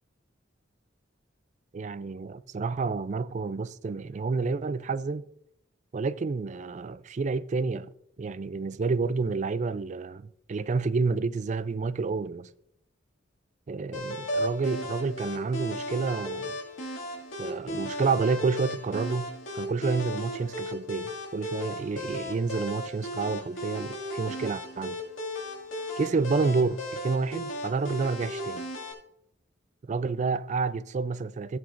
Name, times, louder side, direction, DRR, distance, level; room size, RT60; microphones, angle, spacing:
voice 1, 1.7-5.2 5.9-7.9 8.2-12.5 13.7-16.5 17.4-25.0 26.0-28.7 29.8-31.6, right 4 dB, 40° right, 0.3 m, -29 dB
sound 1, 13.9-28.9, equal, 85° left, 2.2 m, -36 dB
14.5 x 8.7 x 2.5 m
head